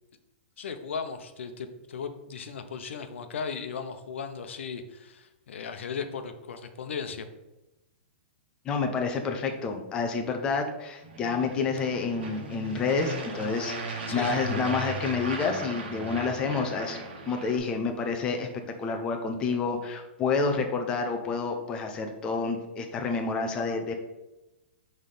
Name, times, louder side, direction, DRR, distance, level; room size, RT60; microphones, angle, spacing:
voice 1, 0.6-7.3 14.1-14.4, left 6 dB, 85° left, 8 dB, 0.7 m, -36 dB
voice 2, 8.7-17.0 17.3-23.9, left 4 dB, 15° left, 4 dB, 0.4 m, -29 dB
sound 1, 11.0-17.6, right 3 dB, 60° right, 1.2 m, -37 dB
5.4 x 3.2 x 5.5 m, 0.99 s
hypercardioid pair, 175°, 6 cm